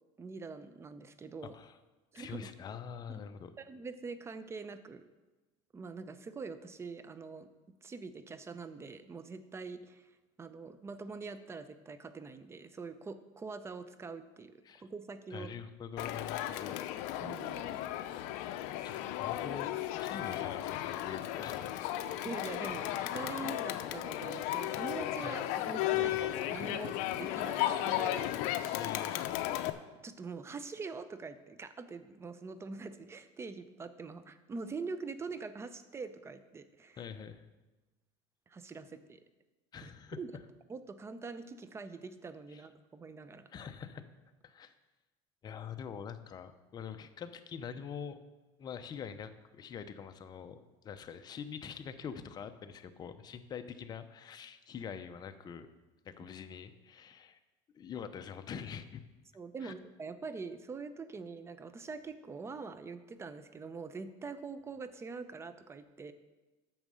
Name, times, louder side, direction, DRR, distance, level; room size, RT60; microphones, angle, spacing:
voice 1, 0.2-1.5 2.1-2.5 3.1-3.2 3.6-5.0 5.7-7.5 7.8-10.1 10.4-15.5 17.2-17.7 22.2-28.7 29.5-29.6 30.0-37.0 38.5-39.2 39.8-40.3 40.7-43.5 59.3-66.1, right 4 dB, 20° right, 12 dB, 0.7 m, -44 dB
voice 2, 2.1-3.5 14.7-14.8 15.3-16.8 18.4-21.9 25.2-25.3 25.9-26.3 28.8-29.2 37.0-37.4 39.7-40.2 42.5-42.6 43.5-44.0 44.4-44.7 45.4-48.2 48.6-50.6 50.8-55.7 56.0-57.4 57.7-59.0 59.6-59.7, left 7 dB, 30° left, 9 dB, 0.7 m, -45 dB
Crowd, 16.0-29.7, left 13 dB, 70° left, 0.6 m, -35 dB
8.9 x 6.5 x 6.3 m, 1.2 s
supercardioid pair, 120°, 13 cm